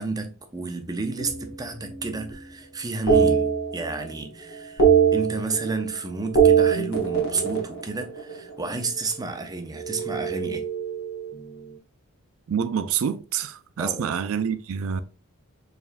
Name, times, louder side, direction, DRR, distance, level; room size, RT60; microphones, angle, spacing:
voice 1, 0.0-4.9 5.1-10.6 13.8-14.1, right 3 dB, 20° right, 0.6 m, -31 dB
sound 1, 1.2-2.5 3.1-4.2 4.5-5.9 6.2-8.6 9.8-11.5, right 7 dB, 75° left, 1.5 m, -23 dB
voice 2, 12.5-15.0, right 7 dB, 70° right, 0.4 m, -27 dB
4.6 x 3.4 x 2.5 m
head